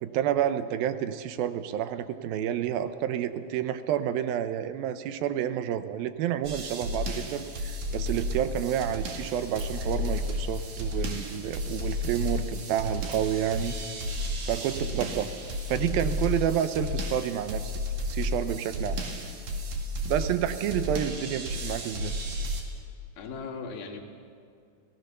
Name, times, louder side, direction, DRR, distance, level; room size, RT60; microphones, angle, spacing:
voice 1, 0.0-13.8 14.5-15.3 15.7-17.7 18.1-19.0 20.0-22.2, right 10 dB, 80° right, 11 dB, 2.7 m, -29 dB
sound 1, 6.4-22.6, left 1 dB, 50° right, 3.2 m, -33 dB
Camera, 9.0-16.7, right 1 dB, 35° right, 4.7 m, -50 dB
voice 2, 14.8-15.2 20.5-20.7 23.2-24.0, left 5 dB, 80° left, 2 dB, 3.8 m, -40 dB
30.0 x 17.5 x 6.8 m, 2.3 s
omnidirectional pair, 4.2 m